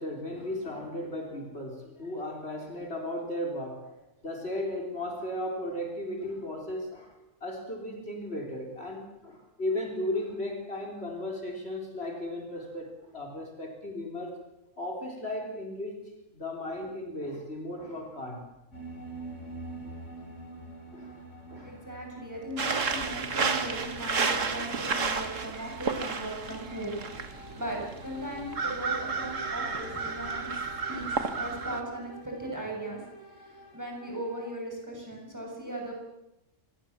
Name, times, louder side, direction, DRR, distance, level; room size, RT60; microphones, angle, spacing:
voice 1, 0.0-3.9 4.2-7.1 7.4-14.4 14.8-18.5 20.9-21.2 21.5-21.8 24.6-24.7 27.6-27.7 30.9-31.1, left 1 dB, 55° left, 2 dB, 4.2 m, -36 dB
sound 1, 18.7-34.5, right 1 dB, 70° left, 4.9 m, -47 dB
voice 2, 21.6-35.9, right 1 dB, 15° right, -1 dB, 7.4 m, -38 dB
sound 2, 22.6-31.8, right 4 dB, 75° right, 2.1 m, -32 dB
26.0 x 21.0 x 7.4 m, 0.91 s
omnidirectional pair, 1.3 m